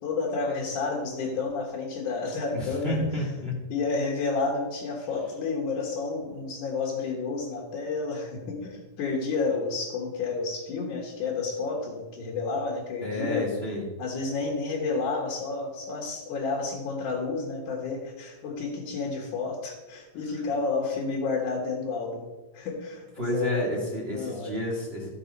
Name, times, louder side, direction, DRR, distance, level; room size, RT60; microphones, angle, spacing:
voice 1, 0.0-3.0 3.7-13.5 14.0-22.3 22.5-23.0 23.3-24.5, left 4 dB, 70° left, -3 dB, 3.1 m, -30 dB
voice 2, 2.5-3.6 13.0-13.8 23.2-25.1, left 1 dB, 20° right, -2 dB, 1.9 m, -30 dB
14.5 x 7.1 x 5.4 m, 1.2 s
omnidirectional pair, 3.8 m